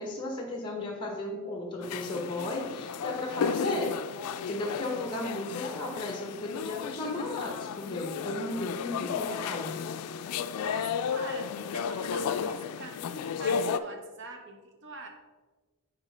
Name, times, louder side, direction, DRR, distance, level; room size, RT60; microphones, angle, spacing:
voice 1, 0.0-4.0 4.5-9.7, left 1 dB, 20° left, 0 dB, 0.9 m, -35 dB
sound 1, 1.8-13.8, left 7 dB, 80° left, 0.3 m, -33 dB
voice 2, 10.5-15.1, right 2 dB, 55° right, 4 dB, 0.9 m, -44 dB
9.9 x 3.6 x 3.3 m, 1.3 s
head